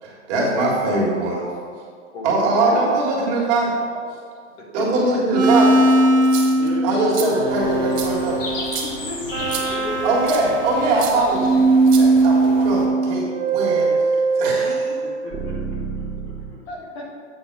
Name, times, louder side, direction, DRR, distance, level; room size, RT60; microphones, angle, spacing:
voice 1, 0.0-1.5 2.2-3.7 4.7-5.8 6.8-8.4 10.0-11.6 12.0-13.9 14.3-14.8, right 2 dB, 35° right, -4 dB, 1.8 m, -21 dB
voice 2, 2.1-2.8 3.3-3.5 3.9-4.0 4.8-4.9 6.6-6.7 8.8-10.2 16.7-17.1, left 2 dB, 55° left, -1 dB, 1.7 m, -33 dB
sound 1, 5.3-11.1 11.3-16.5, right 2 dB, 10° right, 1.2 m, -20 dB
sound 2, 6.2-6.7 7.1-7.3 8.0-8.1 8.7-8.9 9.5-9.7 10.3-10.5 11.0-11.1 11.9-12.5, right 7 dB, 60° right, 1.5 m, -31 dB
voice 3, 6.5-6.8 9.7-10.1 14.6-14.7 15.0-16.6, equal, 15° left, -8 dB, 1.2 m, -40 dB
sound 3, 7.5-12.9, left 2 dB, 80° left, 2.0 m, -35 dB
8.0 x 3.8 x 6.0 m, 2.1 s
hypercardioid pair, 165°, 37 cm